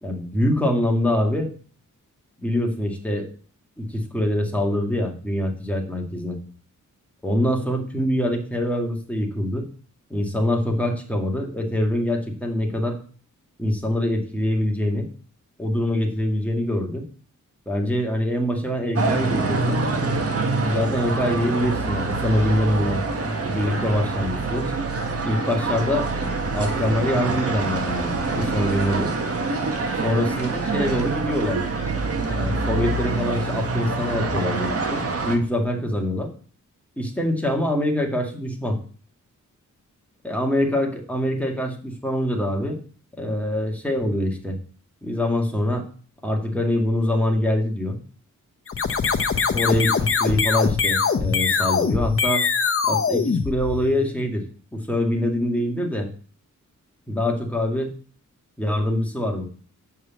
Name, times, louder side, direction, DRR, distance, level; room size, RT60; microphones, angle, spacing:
voice 1, 0.0-1.5 2.4-3.3 3.8-6.4 7.2-9.7 10.1-13.0 13.6-15.1 15.6-17.0 17.7-19.8 20.7-23.0 23.5-24.7 25.3-29.1 30.0-31.6 32.4-36.3 37.0-38.8 40.2-42.8 43.2-44.6 45.0-45.9 46.2-48.0 49.5-52.5 52.8-54.4 54.7-56.1 57.1-57.9 58.6-59.5, left 1 dB, 5° left, 1 dB, 1.9 m, -24 dB
sound 1, 19.0-35.4, right 3 dB, 45° right, 1.6 m, -25 dB
sound 2, 48.7-54.1, left 5 dB, 45° left, 0.8 m, -22 dB
7.5 x 4.8 x 7.2 m, 0.42 s
wide cardioid pair, 130°, 31 cm